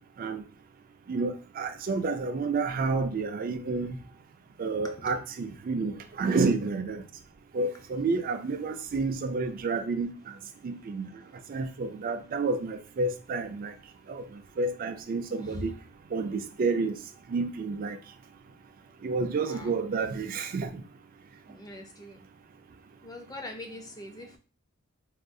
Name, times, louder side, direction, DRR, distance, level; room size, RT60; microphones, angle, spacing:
voice 1, 1.1-4.0 4.6-7.0 7.5-10.1 10.6-11.1 11.5-13.7 14.1-14.2 14.6-15.7 16.1-17.0 17.3-18.0 19.0-20.8, right 3 dB, 45° right, 8 dB, 0.3 m, -30 dB
voice 2, 15.3-15.7 19.3-19.8 21.5-22.2 23.0-24.4, left 1 dB, 20° left, 3 dB, 0.5 m, -42 dB
3.5 x 2.3 x 2.6 m, 0.36 s
head